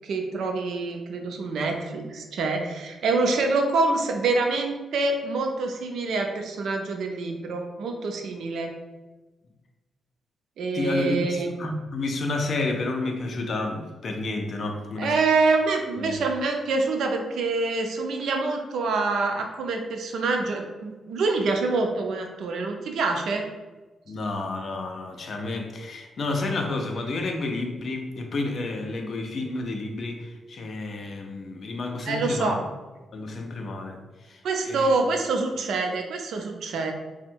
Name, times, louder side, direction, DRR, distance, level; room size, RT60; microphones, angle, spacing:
voice 1, 0.0-8.7 10.6-11.5 15.0-23.5 32.1-32.6 34.4-36.9, right 3 dB, 70° right, 3 dB, 0.5 m, -26 dB
voice 2, 10.7-15.2 16.0-16.2 24.1-32.6 33.1-34.9, left 2 dB, 45° left, 3 dB, 0.5 m, -30 dB
3.6 x 2.1 x 4.3 m, 1.2 s
wide cardioid pair, 155°, 0 cm